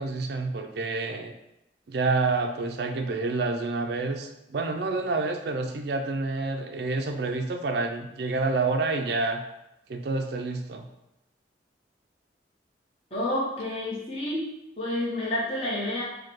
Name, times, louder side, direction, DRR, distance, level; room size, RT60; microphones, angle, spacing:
voice 1, 0.0-1.3 1.9-9.4 9.9-10.8, right 3 dB, 55° right, 5 dB, 0.4 m, -28 dB
voice 2, 13.1-14.5 14.8-16.0, left 1 dB, 30° left, -6 dB, 1.1 m, -29 dB
4.5 x 2.2 x 4.5 m, 0.89 s
head